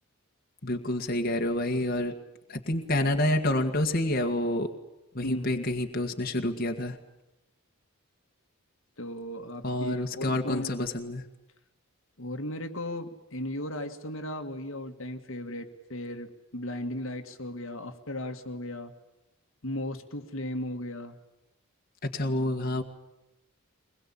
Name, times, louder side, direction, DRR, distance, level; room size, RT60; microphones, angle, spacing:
voice 1, 0.6-2.1 2.5-4.7 5.1-7.0 9.6-11.2 22.0-22.8, left 1 dB, 40° left, 3 dB, 1.9 m, -28 dB
voice 2, 5.2-5.6 9.0-10.9 12.2-18.9 19.6-21.2, left 1 dB, 60° left, 6 dB, 1.9 m, -36 dB
23.0 x 21.5 x 8.8 m, 0.93 s
head